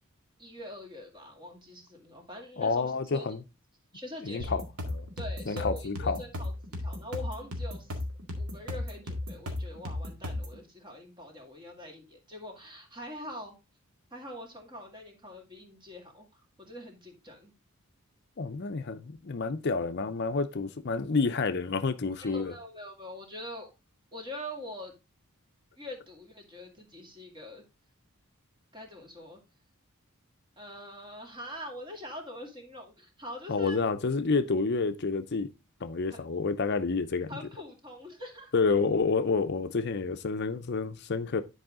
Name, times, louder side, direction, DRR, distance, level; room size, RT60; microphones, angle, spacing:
voice 1, 0.4-3.3 3.9-4.6 5.2-6.5 6.8-8.0 8.4-13.6 14.1-16.3 16.6-17.5 22.2-23.7 24.1-24.9 25.8-27.6 28.7-29.4 30.6-33.8 36.1-36.2 37.3-38.5, left 1 dB, 20° right, 2.1 m, -43 dB
voice 2, 2.6-3.4 4.2-4.6 4.9-5.1 5.5-6.2 18.4-22.5 33.5-35.5 35.8-37.3 38.5-41.4, left 4 dB, 50° left, 0.6 m, -29 dB
sound 1, 4.4-10.6, left 1 dB, 85° right, 1.9 m, -35 dB
10.5 x 4.8 x 3.6 m
head